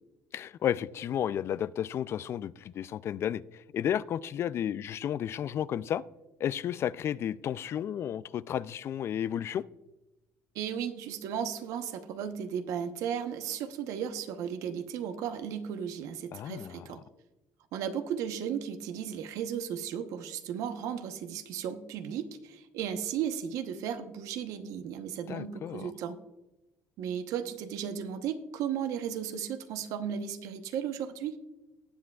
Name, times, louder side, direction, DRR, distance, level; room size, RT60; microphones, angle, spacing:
voice 1, 0.3-6.0 6.4-9.6 16.3-16.9 25.3-25.9, left 10 dB, 50° left, 0.3 m, -32 dB
voice 2, 10.5-17.0 17.7-26.2 27.0-31.4, right 8 dB, 70° right, 0.9 m, -35 dB
18.5 x 7.5 x 2.3 m
supercardioid pair, 95°, 6 cm